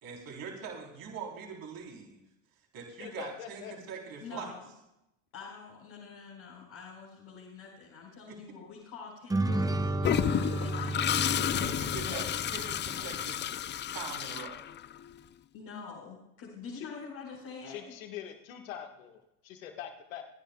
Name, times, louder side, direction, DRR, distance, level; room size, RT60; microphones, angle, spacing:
voice 1, 0.0-2.2 2.7-4.5 8.3-8.4 11.6-12.3 12.5-13.5 13.9-14.6, right 6 dB, 60° right, 0 dB, 3.6 m, -42 dB
voice 2, 3.0-3.7 12.1-12.2 16.8-16.9 17.6-20.2, left 9 dB, 85° left, 5 dB, 1.5 m, -43 dB
voice 3, 4.2-4.6 5.3-9.9 10.6-11.2 12.0-12.3 15.5-17.8, left 5 dB, 70° left, -5 dB, 4.6 m, -45 dB
sound 1, 9.3-12.9, right 2 dB, 10° right, 0.8 m, -32 dB
Toilet flush, 10.0-15.1, left 10 dB, 30° left, 0.4 m, -31 dB
27.0 x 10.5 x 2.3 m, 0.86 s
hypercardioid pair, 70°, 39 cm